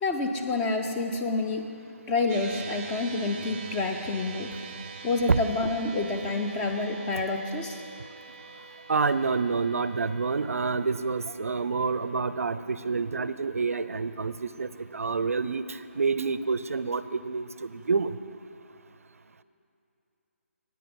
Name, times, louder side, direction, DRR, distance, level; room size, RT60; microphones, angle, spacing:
voice 1, 0.0-1.7 2.1-4.5 5.0-7.8, left 3 dB, 10° left, 3 dB, 0.4 m, -28 dB
sound 1, 2.3-14.8, right 4 dB, 25° right, 0.6 m, -45 dB
voice 2, 8.9-18.2, right 4 dB, 75° right, 14 dB, 0.4 m, -28 dB
9.3 x 8.7 x 5.2 m, 2.7 s
figure-of-eight pair, 155°, 8 cm